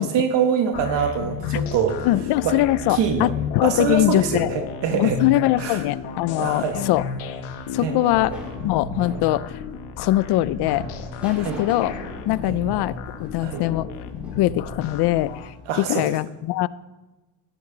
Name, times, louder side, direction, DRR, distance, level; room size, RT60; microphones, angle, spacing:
voice 1, 0.0-2.0 2.4-2.6 2.9-3.3 3.6-5.2 5.6-5.8 6.4-6.9 7.8-8.4 11.4-11.6 12.4-12.6 13.4-13.6 15.7-16.0, right 7 dB, 60° right, 5 dB, 1.5 m, -24 dB
sound 1, 0.7-15.5, left 7 dB, 90° left, 1.3 m, -33 dB
voice 2, 2.0-4.5 5.0-7.0 7.7-8.4 8.6-9.6 10.0-10.9 11.2-11.9 12.3-13.9 14.4-16.7, left 15 dB, 55° left, 18 dB, 0.5 m, -22 dB
sound 2, 7.5-15.6, left 1 dB, 5° right, 4.0 m, -41 dB
17.0 x 12.0 x 3.9 m, 1.1 s
cardioid pair, 155°, 48 cm